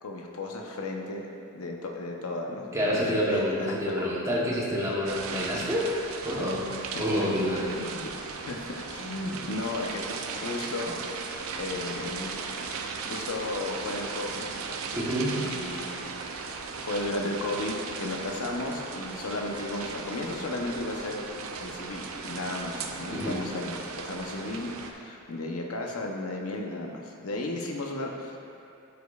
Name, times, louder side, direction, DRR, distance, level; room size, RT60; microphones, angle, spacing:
voice 1, 0.0-1.2 1.5-3.7 6.9-7.2 7.7-8.1 8.5-11.0 11.6-12.4 13.0-14.5 15.3-16.3 16.8-21.3 21.6-28.4, left 2 dB, 75° left, 1 dB, 0.8 m, -34 dB
voice 2, 2.7-5.9 6.2-6.6 7.0-7.7 14.9-15.4 23.1-23.4, equal, 15° right, -5 dB, 1.0 m, -27 dB
sound 1, 5.0-24.9, right 4 dB, 65° right, 0.5 m, -37 dB
12.0 x 5.1 x 2.4 m, 2.9 s
head